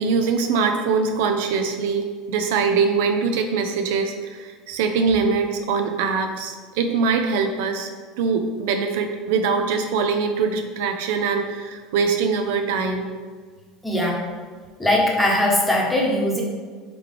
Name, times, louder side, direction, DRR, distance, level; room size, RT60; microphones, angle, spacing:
voice 1, 0.0-7.9 8.2-13.1, right 5 dB, 75° right, 5 dB, 0.4 m, -23 dB
voice 2, 13.8-14.2 14.8-16.4, left 1 dB, 10° left, -2 dB, 1.0 m, -20 dB
3.7 x 3.2 x 3.3 m, 1.5 s
hypercardioid pair, 85°, 0 cm